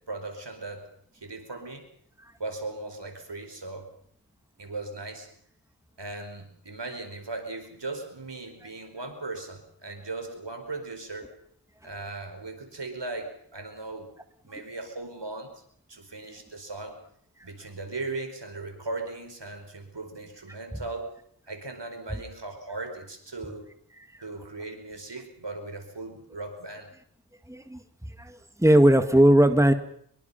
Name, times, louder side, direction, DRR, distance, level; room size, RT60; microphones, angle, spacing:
voice 1, 0.1-0.9 1.1-1.8 2.4-3.9 4.6-5.3 6.0-11.3 11.8-14.1 14.4-15.5 15.9-17.0 17.4-21.1 21.5-23.7 24.2-26.9, right 2 dB, 85° right, 5 dB, 4.9 m, -38 dB
voice 2, 27.5-27.8 28.2-29.7, right 1 dB, 5° right, 8 dB, 1.9 m, -18 dB
24.5 x 23.0 x 5.8 m, 0.66 s
wide cardioid pair, 40°, 41 cm